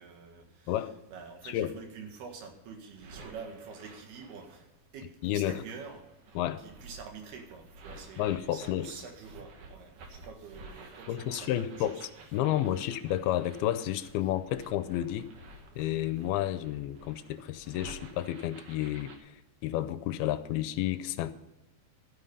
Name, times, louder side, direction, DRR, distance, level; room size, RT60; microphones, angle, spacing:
voice 1, 0.0-4.7 4.9-6.1 6.6-12.0, right 5 dB, 80° right, 4 dB, 3.7 m, -47 dB
sound 1, 2.8-4.6 5.4-19.2, right 3 dB, 60° right, 2.8 m, -52 dB
voice 2, 5.2-5.6 6.4-6.6 8.2-8.9 11.1-12.0 12.3-15.3 15.8-19.3 19.6-21.3, left 12 dB, 85° left, 12 dB, 2.5 m, -31 dB
13.0 x 9.8 x 5.4 m, 0.96 s
omnidirectional pair, 4.4 m